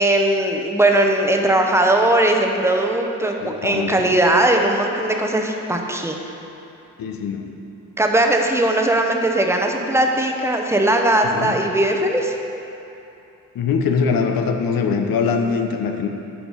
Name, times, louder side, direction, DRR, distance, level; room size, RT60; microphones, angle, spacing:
voice 1, 0.0-6.1 8.0-12.3, right 1 dB, 5° right, 2 dB, 0.7 m, -19 dB
voice 2, 3.4-4.2 7.0-7.5 11.3-11.6 13.5-16.1, left 5 dB, 70° left, 5 dB, 0.8 m, -22 dB
7.2 x 4.7 x 5.5 m, 2.9 s
cardioid pair, 80°, 35 cm